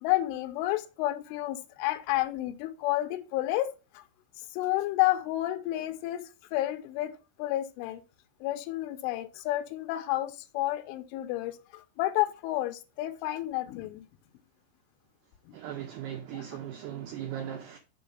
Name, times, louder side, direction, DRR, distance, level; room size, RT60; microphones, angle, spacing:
voice 1, 0.0-4.0 4.5-7.1 7.4-8.0 8.4-14.1 15.5-15.6, left 16 dB, 80° left, 3.0 m, -30 dB
voice 2, 15.5-17.8, right 10 dB, 80° right, 2.4 m, -38 dB
7.1 x 5.2 x 6.7 m
omnidirectional pair, 5.9 m